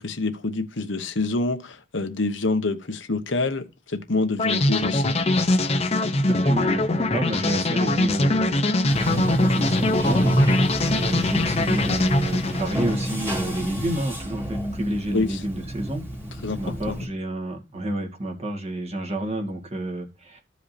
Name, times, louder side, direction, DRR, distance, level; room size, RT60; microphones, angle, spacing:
voice 1, 0.0-5.2 15.1-15.4 16.4-17.0, left 3 dB, 70° left, 1.0 m, -26 dB
sound 1, 4.4-13.4, left 2 dB, 30° left, 0.7 m, -22 dB
voice 2, 6.3-10.4 10.8-16.0 16.6-20.4, right 1 dB, 30° right, 1.9 m, -30 dB
Bathtub (filling or washing), 8.9-17.1, right 1 dB, 10° right, 2.0 m, -28 dB
14.5 x 5.1 x 2.7 m
head